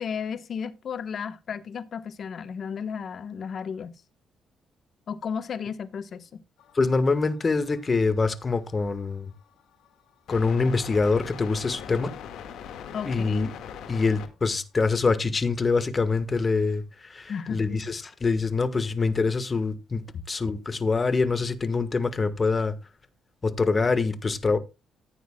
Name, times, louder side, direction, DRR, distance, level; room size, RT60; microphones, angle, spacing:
voice 1, 0.0-4.0 5.1-6.4 12.9-13.5 17.3-17.8, left 6 dB, 55° left, 1.1 m, -34 dB
sound 1, 6.6-14.3 17.3-17.4, left 8 dB, 80° left, 1.7 m, -42 dB
voice 2, 6.7-9.3 10.3-12.1 13.1-13.5 13.9-22.7 23.4-24.6, left 4 dB, 30° left, 1.3 m, -25 dB
14.5 x 9.4 x 2.2 m
cardioid pair, 90°, 0 cm